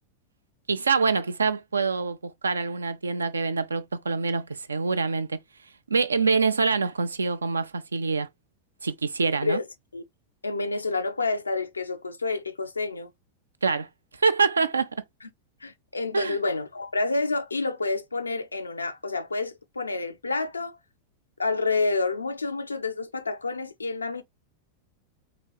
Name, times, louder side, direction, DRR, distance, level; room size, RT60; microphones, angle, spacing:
voice 1, 0.7-5.4 5.9-8.3 8.8-9.6 13.6-13.9 14.2-14.9 16.1-16.4, right 4 dB, 75° right, 0.4 m, -25 dB
voice 2, 10.4-13.1 15.6-20.8 21.4-24.2, left 3 dB, 80° left, 0.5 m, -29 dB
4.2 x 2.9 x 2.2 m
figure-of-eight pair, 90°, 0 cm